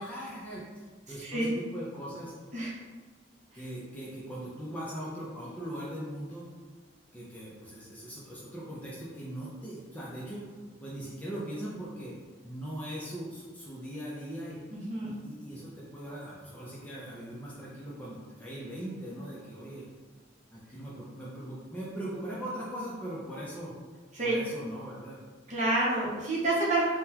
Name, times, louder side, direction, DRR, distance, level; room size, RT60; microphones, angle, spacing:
voice 1, 0.0-2.3 3.5-6.4 7.1-10.4 10.8-12.1 12.4-14.6 15.0-19.9 20.5-23.7 24.2-25.2, right 1 dB, 10° left, -7 dB, 0.5 m, -40 dB
voice 2, 1.2-1.5 2.5-2.7 14.7-15.1 24.1-24.4 25.5-26.9, right 2 dB, 35° right, -5 dB, 0.7 m, -28 dB
3.7 x 2.2 x 2.8 m, 1.4 s
head